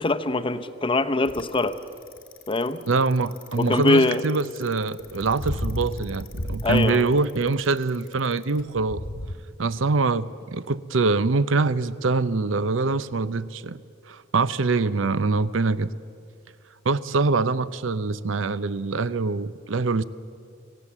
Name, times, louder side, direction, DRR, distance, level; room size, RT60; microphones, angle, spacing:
voice 1, 0.0-1.8 2.5-2.8 3.6-4.2 6.6-7.1, left 2 dB, 25° left, 0.8 m, -23 dB
Bicycle, 1.2-9.3, left 1 dB, 90° left, 1.8 m, -34 dB
voice 2, 2.9-9.0 9.6-13.8 14.1-15.9 16.8-20.0, right 3 dB, 75° right, 0.6 m, -24 dB
25.5 x 16.5 x 7.3 m
head